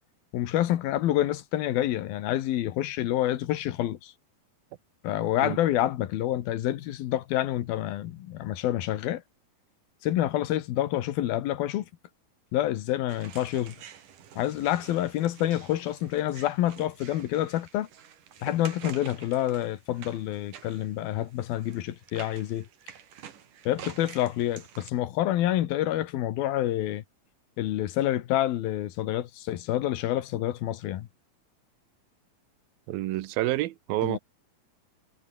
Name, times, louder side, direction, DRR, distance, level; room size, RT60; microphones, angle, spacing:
voice 1, 0.3-4.1 5.0-9.2 10.0-11.9 12.5-13.8 14.4-17.9 18.4-22.7 23.7-27.0 27.6-31.1 34.0-34.2, left 13 dB, 90° left, 3.2 m, -28 dB
sound 1, 13.1-24.9, right 9 dB, 65° right, 3.8 m, -48 dB
voice 2, 32.9-34.2, right 16 dB, 85° right, 2.8 m, -28 dB
omnidirectional pair, 4.2 m